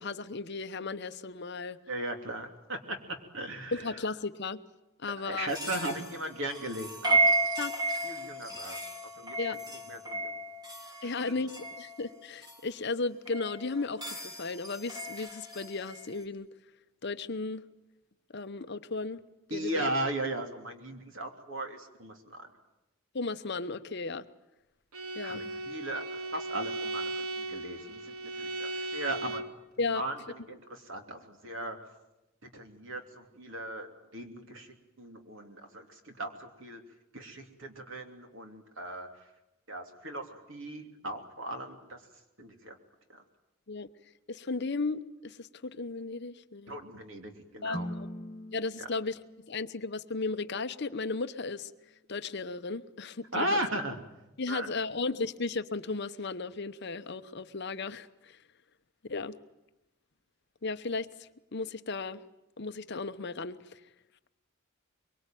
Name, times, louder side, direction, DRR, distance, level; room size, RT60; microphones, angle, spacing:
voice 1, 0.0-1.8 3.7-4.6 5.0-5.5 7.6-7.7 9.4-9.6 11.0-16.5 17.0-17.6 18.3-19.2 19.5-19.9 23.1-24.2 25.2-25.5 29.8-30.1 43.7-43.9 44.3-46.8 47.6-48.1 48.5-49.2 49.5-51.7 52.1-53.6 54.4-58.4 59.1-59.4 60.6-62.2 62.6-63.8, left 3 dB, 50° left, 11 dB, 0.9 m, -35 dB
voice 2, 1.9-3.0 3.3-3.9 5.2-7.4 8.0-8.8 9.2-10.4 11.0-11.4 19.5-22.5 25.2-29.4 29.9-31.8 32.4-36.8 37.1-39.1 39.7-42.0 42.4-42.8 43.1-43.2 46.7-47.9 48.8-48.9 53.3-54.0 54.5-54.7, right 1 dB, 60° right, 5 dB, 3.1 m, -37 dB
sound 1, 5.5-12.6 13.3-16.2, right 2 dB, 20° right, 3.7 m, -33 dB
Bowed string instrument, 24.9-29.6, right 2 dB, 80° right, 1.6 m, -37 dB
sound 2, 47.7-51.8, equal, 20° left, 1.9 m, -44 dB
24.0 x 23.5 x 9.2 m, 0.94 s
head